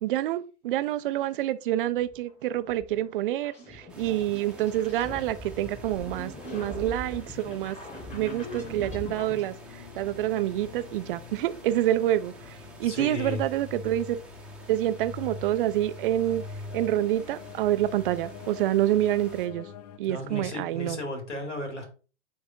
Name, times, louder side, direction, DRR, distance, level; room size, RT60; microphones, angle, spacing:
voice 1, 0.0-7.8 8.1-14.2 14.7-16.5 16.7-19.7 20.0-21.0, right 13 dB, 50° right, 0.6 m, -27 dB
sound 1, 2.0-9.4, left 1 dB, 20° left, 3.5 m, -41 dB
sound 2, 3.9-19.5, right 2 dB, 5° right, 1.3 m, -50 dB
sound 3, 5.5-20.0, left 5 dB, 35° left, 0.5 m, -45 dB
voice 2, 12.8-13.4 20.1-21.9, left 2 dB, 75° left, 2.3 m, -34 dB
10.5 x 3.5 x 2.6 m
figure-of-eight pair, 95°, 35 cm